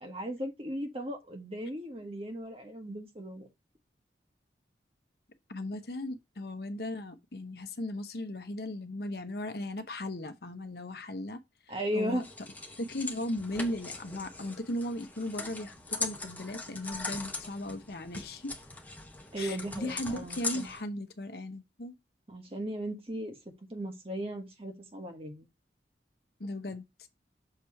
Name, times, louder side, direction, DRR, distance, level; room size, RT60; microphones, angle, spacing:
voice 1, 0.0-3.5 11.7-12.3 19.3-20.7 22.3-23.4 23.7-25.5, equal, 30° right, 1.3 m, -36 dB
voice 2, 5.5-11.4 11.7-12.2 12.8-18.5 19.4-21.9 26.4-27.1, left 1 dB, 60° left, 0.9 m, -37 dB
sound 1, 12.2-20.8, left 3 dB, 10° left, 0.8 m, -40 dB
6.6 x 3.1 x 5.7 m
head